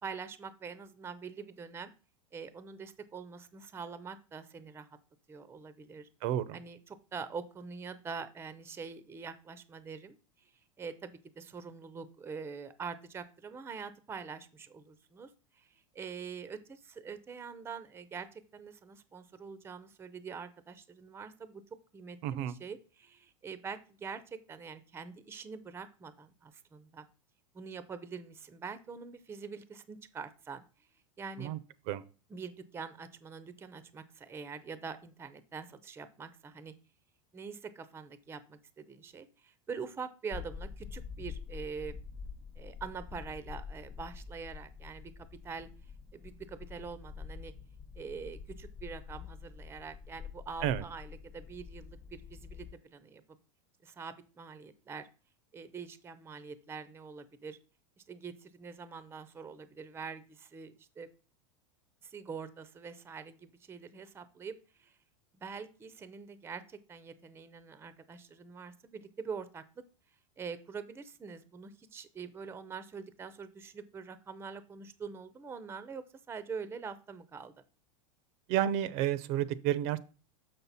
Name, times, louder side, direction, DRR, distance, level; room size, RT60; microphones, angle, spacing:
voice 1, 0.0-1.9 2.3-4.9 5.3-6.1 6.5-10.2 10.8-21.6 21.9-27.1 27.5-30.6 31.2-31.6 32.3-36.7 37.3-42.0 42.6-45.7 46.1-47.5 48.0-53.2 53.8-55.1 55.5-57.6 58.0-61.1 62.0-64.9 65.4-69.8 70.4-77.5, right 5 dB, 15° right, 13 dB, 0.6 m, -44 dB
voice 2, 6.2-6.6 22.2-22.5 31.4-31.6 31.9-32.0 50.6-50.8 78.5-80.0, right 11 dB, 55° right, 17 dB, 0.6 m, -30 dB
sound 1, 40.3-52.7, left 6 dB, 25° left, 1.1 m, -46 dB
6.6 x 5.9 x 4.0 m, 0.35 s
supercardioid pair, 125°, 17 cm